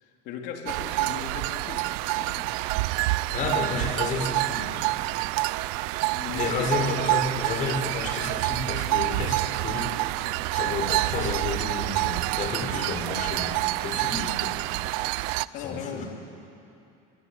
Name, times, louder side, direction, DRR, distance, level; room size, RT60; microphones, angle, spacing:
voice 1, 0.2-2.5 6.1-6.7 15.5-16.0, left 7 dB, 65° left, 1 dB, 3.9 m, -38 dB
sound 1, 0.7-15.5, right 20 dB, 75° right, 0.6 m, -27 dB
voice 2, 3.3-4.8 6.3-14.5 15.6-16.1, left 4 dB, 45° left, 3 dB, 5.8 m, -31 dB
25.5 x 24.5 x 8.6 m, 2.7 s
supercardioid pair, 125°, 19 cm